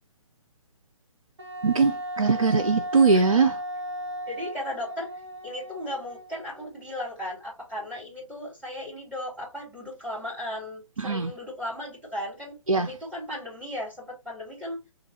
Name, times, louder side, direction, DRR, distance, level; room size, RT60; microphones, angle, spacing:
Wind instrument woodwind instrument, 1.4-6.9, equal, 50° right, 1.1 m, -36 dB
voice 1, 1.6-3.6 11.0-11.3 12.7-12.9, right 4 dB, 85° right, 0.5 m, -21 dB
voice 2, 4.3-5.1 5.4-14.8, left 1 dB, 5° right, 1.8 m, -36 dB
3.9 x 2.5 x 3.1 m
figure-of-eight pair, 130°, 17 cm